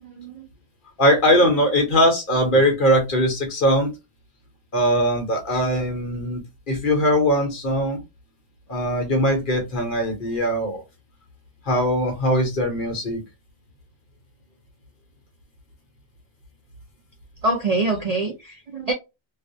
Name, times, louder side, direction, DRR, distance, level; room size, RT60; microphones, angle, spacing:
voice 1, 0.0-0.5 17.4-18.9, right 2 dB, 60° right, 0.4 m, -25 dB
voice 2, 1.0-3.9 4.7-8.0 8.7-10.8 11.7-13.2, equal, 50° left, 0.8 m, -20 dB
2.4 x 2.0 x 2.6 m
omnidirectional pair, 1.2 m